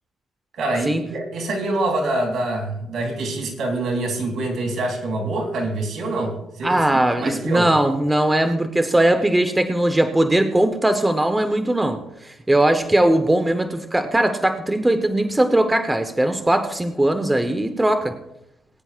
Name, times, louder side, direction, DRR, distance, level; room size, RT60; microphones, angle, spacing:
voice 1, 0.6-7.7, right 2 dB, 65° right, 2 dB, 2.9 m, -25 dB
voice 2, 6.6-18.2, right 1 dB, 10° right, 8 dB, 0.9 m, -19 dB
20.0 x 9.9 x 2.5 m, 0.84 s
cardioid pair, 90°, 0 cm